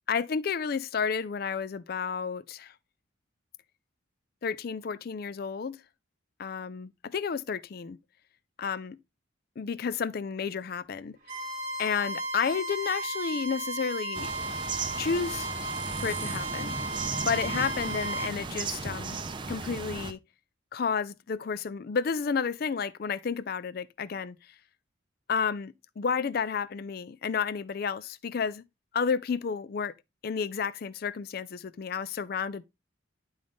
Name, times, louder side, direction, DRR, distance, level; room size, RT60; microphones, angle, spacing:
voice 1, 0.1-2.7 4.4-5.8 6.4-8.0 8.6-9.0 9.6-11.2 11.8-14.3 15.0-15.5 16.0-16.7 17.3-19.2 19.5-20.2 20.7-24.4 25.3-28.6 28.9-29.9 30.2-32.6, left 6 dB, 50° left, 0.4 m, -31 dB
Bowed string instrument, 11.2-18.3, right 1 dB, 40° right, 1.2 m, -35 dB
sound 1, 14.1-20.1, right 4 dB, 25° right, 0.5 m, -35 dB
10.0 x 3.9 x 3.5 m
head